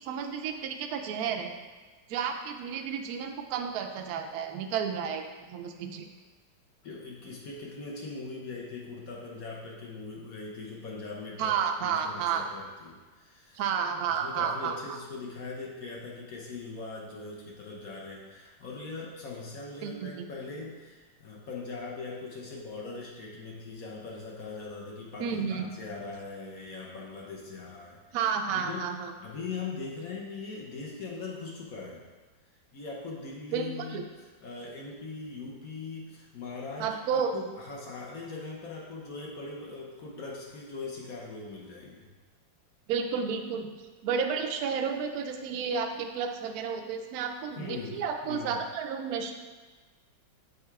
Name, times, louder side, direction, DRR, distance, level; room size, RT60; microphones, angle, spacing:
voice 1, 0.0-1.5 2.1-6.1 11.4-12.5 13.5-15.0 19.8-20.3 25.2-25.6 28.1-29.1 33.5-34.0 36.8-37.3 42.9-43.7 44.0-49.3, right 6 dB, 70° right, 4 dB, 0.9 m, -31 dB
voice 2, 6.8-13.6 14.1-28.9 29.2-32.1 32.7-34.0 34.4-42.1 47.6-48.6, left 3 dB, 55° left, -3 dB, 1.2 m, -41 dB
6.8 x 3.5 x 4.7 m, 1.4 s
omnidirectional pair, 2.0 m